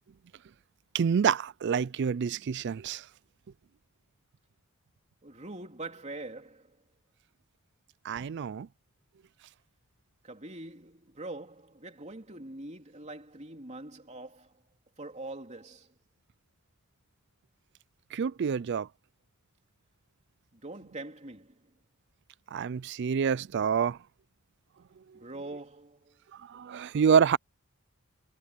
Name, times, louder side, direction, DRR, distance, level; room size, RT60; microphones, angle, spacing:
voice 1, 0.9-3.0 8.1-8.7 18.1-18.9 22.5-24.0 26.5-27.4, right 7 dB, 50° right, 0.4 m, -27 dB
voice 2, 5.2-6.8 10.2-14.6 15.0-15.9 20.5-21.6 25.1-26.2, right 2 dB, 30° right, 3.2 m, -43 dB
head